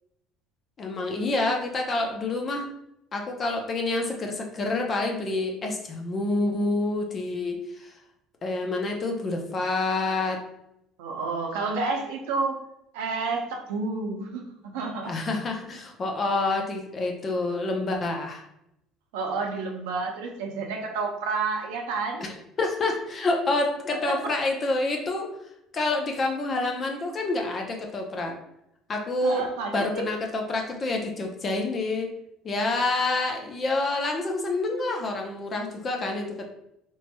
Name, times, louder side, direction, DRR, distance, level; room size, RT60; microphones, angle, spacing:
voice 1, 0.8-2.7 3.1-7.9 8.4-10.4 15.0-18.4 22.2-25.3 25.7-28.4 28.9-29.5 29.7-32.1 32.4-36.5, left 2 dB, 40° left, 2 dB, 0.6 m, -28 dB
voice 2, 11.0-12.5 12.9-15.1 19.1-22.2 24.1-24.2 29.2-30.1, right 4 dB, 90° right, 1 dB, 0.5 m, -30 dB
3.0 x 2.8 x 2.2 m, 0.80 s
supercardioid pair, 90°, 0 cm